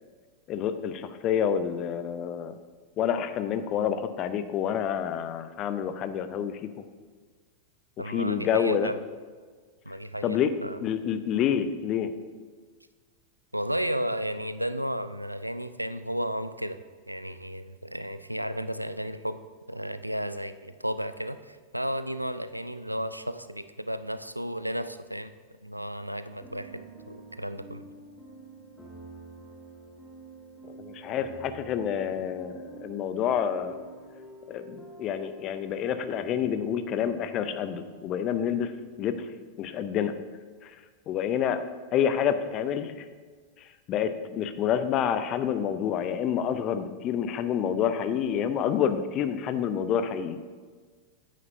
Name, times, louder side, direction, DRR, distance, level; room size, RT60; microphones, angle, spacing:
voice 1, 0.5-2.6 3.0-6.7 8.1-8.9 10.2-10.5 10.8-12.1 30.7-33.8 34.5-38.7 39.0-39.3 39.6-40.1 40.6-40.7 41.1-41.6 41.9-43.1 43.6-50.4, left 8 dB, 35° left, 11 dB, 0.5 m, -28 dB
voice 2, 8.0-9.0 9.9-10.8 13.5-16.8 17.1-19.4 19.7-25.3 25.6-27.8, equal, 90° right, 12 dB, 0.3 m, -33 dB
sound 1, 26.4-37.9, right 2 dB, 10° left, 2.0 m, -47 dB
9.2 x 8.4 x 2.7 m, 1.5 s
figure-of-eight pair, 90°, 0 cm